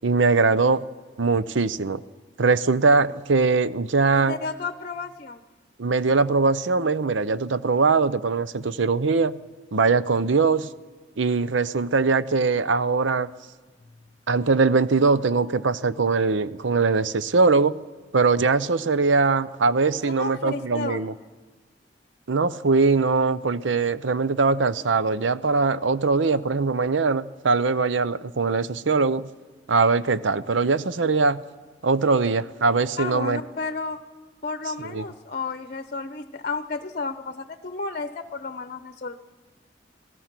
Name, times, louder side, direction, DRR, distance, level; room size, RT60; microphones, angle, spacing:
voice 1, 0.0-0.8 1.2-2.0 2.4-4.3 5.8-9.4 9.7-10.7 11.2-13.3 14.3-17.8 18.1-21.1 22.3-29.3 29.7-31.4 31.8-33.4 34.8-35.0, right 4 dB, 80° right, 15 dB, 0.7 m, -21 dB
voice 2, 4.1-5.4 20.0-21.1 33.0-34.0 34.4-39.2, left 4 dB, 45° left, 10 dB, 0.8 m, -32 dB
26.5 x 18.0 x 6.0 m, 1.3 s
head